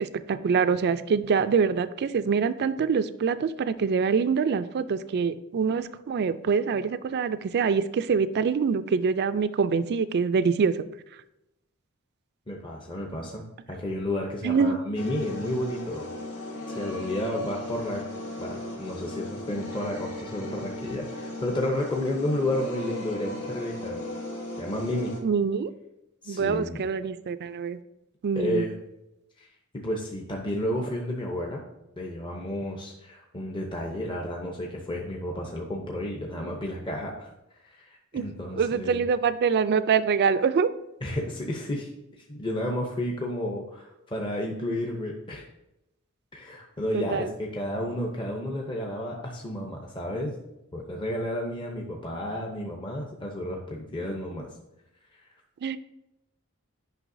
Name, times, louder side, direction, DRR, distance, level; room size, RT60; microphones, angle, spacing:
voice 1, 0.0-10.9 14.4-14.8 25.2-25.7 26.3-27.8 28.2-28.7 38.1-38.3 38.6-40.7 46.9-47.3 55.6-55.8, right 5 dB, 50° right, 13 dB, 0.3 m, -25 dB
voice 2, 12.5-16.1 16.7-18.0 18.4-24.0 24.6-25.1 26.2-26.8 28.4-28.7 29.4-29.5 29.7-31.6 32.0-37.3 37.5-39.0 41.0-41.9 42.2-45.4 46.3-50.4 50.7-54.5, left 1 dB, 25° left, 0 dB, 0.7 m, -31 dB
sound 1, 14.9-25.2, left 2 dB, 80° left, 1.3 m, -37 dB
9.1 x 5.5 x 2.6 m, 0.90 s
head